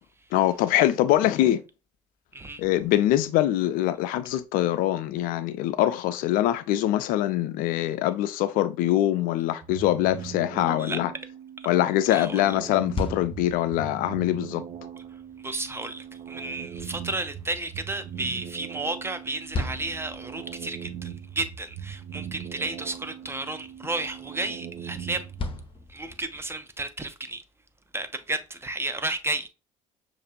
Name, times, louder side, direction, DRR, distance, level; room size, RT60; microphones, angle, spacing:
voice 1, 0.3-1.6 2.6-11.1 11.7-14.6, left 13 dB, 55° left, 0.4 m, -23 dB
voice 2, 2.3-2.7 10.8-11.0 12.1-12.5 15.4-25.3 25.9-27.4 27.9-29.5, right 2 dB, 15° right, 0.8 m, -32 dB
sound 1, 9.6-25.7, right 8 dB, 45° right, 0.5 m, -40 dB
sound 2, 12.7-26.6, left 2 dB, 30° left, 0.8 m, -41 dB
6.4 x 2.6 x 2.8 m
figure-of-eight pair, 55°, 17 cm